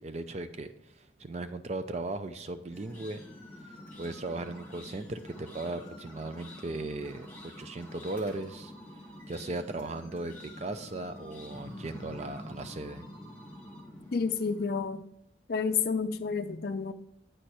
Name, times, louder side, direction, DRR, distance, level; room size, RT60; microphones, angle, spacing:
voice 1, 0.0-3.2 3.6-8.7 9.3-13.0, right 2 dB, 35° right, 9 dB, 0.5 m, -37 dB
sound 1, 2.7-14.8, left 1 dB, 10° left, 2.0 m, -47 dB
voice 2, 14.1-15.0 15.5-16.9, left 5 dB, 50° left, 7 dB, 0.4 m, -30 dB
9.0 x 4.4 x 4.8 m, 0.76 s
head